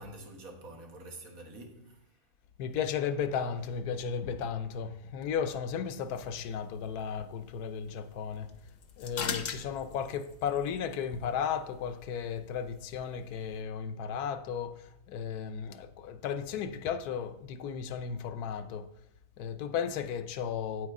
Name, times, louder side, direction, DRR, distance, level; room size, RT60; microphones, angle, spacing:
voice 1, 0.0-2.2, right 2 dB, 65° right, 1.8 m, -47 dB
voice 2, 2.6-8.6 9.0-18.9 19.4-20.9, left 7 dB, 85° left, 1.2 m, -34 dB
sound 1, 5.9-13.6, left 6 dB, 55° left, 0.7 m, -44 dB
8.9 x 8.2 x 3.6 m
omnidirectional pair, 1.6 m